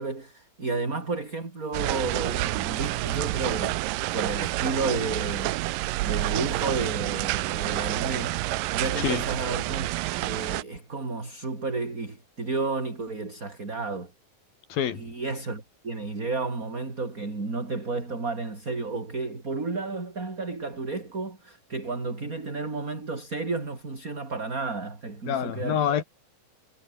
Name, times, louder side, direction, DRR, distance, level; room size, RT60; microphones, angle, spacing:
voice 1, 0.0-3.8 4.1-5.6 6.0-8.4 8.7-9.9 10.2-14.1 14.9-25.8, right 3 dB, 25° right, 4.3 m, -32 dB
sound 1, 1.7-10.6, right 18 dB, 85° right, 2.3 m, -28 dB
voice 2, 9.0-9.3 14.7-15.1 25.3-26.0, left 9 dB, 85° left, 4.2 m, -27 dB
omnidirectional pair, 4.1 m